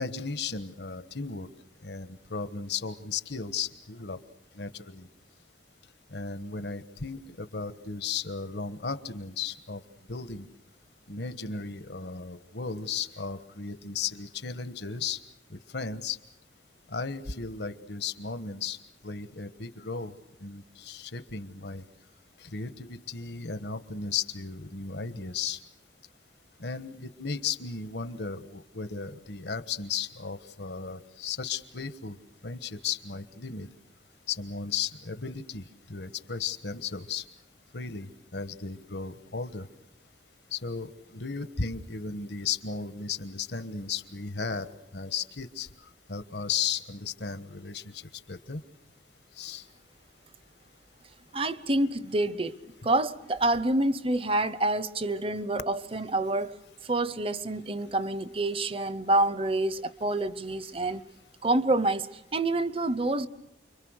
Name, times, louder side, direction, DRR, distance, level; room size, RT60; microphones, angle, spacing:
voice 1, 0.0-1.5 1.8-4.2 4.5-5.1 6.1-9.8 10.1-10.5 11.1-15.2 15.5-16.2 16.9-18.8 19.0-20.1 20.4-21.8 22.4-25.6 26.6-32.2 32.4-33.7 34.3-37.2 37.7-39.7 40.5-45.7 46.1-48.0 48.3-48.6 49.4-49.6, left 5 dB, 70° left, 1.3 m, -35 dB
voice 2, 51.3-52.6 52.8-56.5 56.8-61.0 61.4-63.3, right 2 dB, 30° right, 0.8 m, -27 dB
29.5 x 23.5 x 6.5 m
head